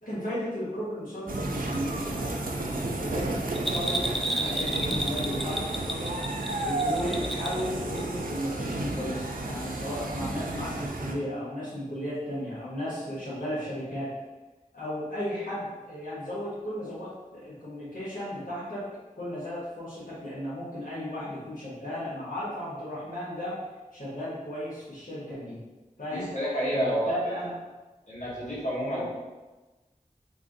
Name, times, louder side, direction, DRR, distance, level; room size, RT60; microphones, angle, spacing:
voice 1, 0.0-6.2 6.6-14.1 14.7-18.8 19.1-23.6 23.9-25.6 26.0-26.3 26.7-27.5 28.8-29.0, equal, 75° left, -10 dB, 1.2 m, -35 dB
sound 1, 1.3-11.1, right 2 dB, 85° right, 0.4 m, -32 dB
Bell, 3.5-7.7 8.0-8.1, right 1 dB, ahead, 0.3 m, -31 dB
voice 2, 26.1-27.3 28.1-29.0, equal, 60° left, -8 dB, 1.3 m, -29 dB
3.4 x 2.6 x 3.8 m, 1.2 s
wide cardioid pair, 45°, 14 cm